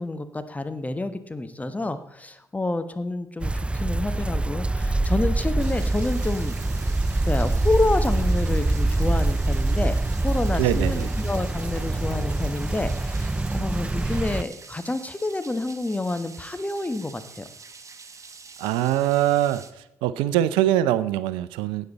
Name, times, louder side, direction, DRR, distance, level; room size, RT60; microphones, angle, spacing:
voice 1, 0.0-6.6 7.2-10.0 10.2-17.5, left 2 dB, 15° left, 10 dB, 1.2 m, -28 dB
sound 1, 3.4-14.4, right 2 dB, 15° right, 0.3 m, -24 dB
sound 2, 5.6-19.7, right 4 dB, 40° right, 1.2 m, -46 dB
voice 2, 10.6-11.1 18.6-19.6 20.0-21.9, right 13 dB, 75° right, 15 dB, 0.5 m, -23 dB
13.0 x 9.2 x 4.1 m, 0.81 s
hypercardioid pair, 50°, 9 cm